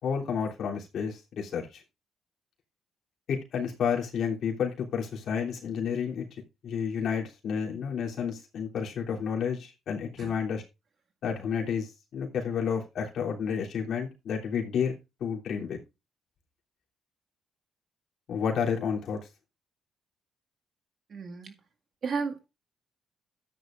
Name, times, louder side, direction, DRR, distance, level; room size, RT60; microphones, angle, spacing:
voice 1, 0.0-1.8 3.3-6.3 6.6-10.6 11.2-14.9 15.2-15.8 18.3-19.2, left 7 dB, 70° left, 3.1 m, -30 dB
voice 2, 21.1-21.5 22.0-22.5, right 5 dB, 55° right, 2.0 m, -33 dB
13.5 x 9.8 x 2.5 m
cardioid pair, 90°, 0 cm